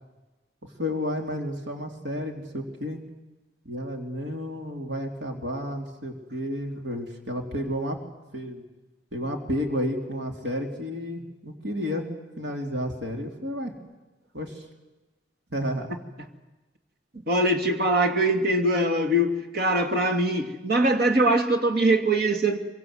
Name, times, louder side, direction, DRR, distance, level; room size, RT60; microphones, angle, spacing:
voice 1, 0.8-3.0 3.6-8.0 8.3-8.6 9.1-12.1 12.4-13.7 14.3-14.6 15.5-15.9, equal, 80° right, 3 dB, 3.4 m, -31 dB
voice 2, 17.3-22.6, right 1 dB, 60° right, 5 dB, 2.6 m, -22 dB
25.5 x 23.5 x 8.1 m, 1.1 s
head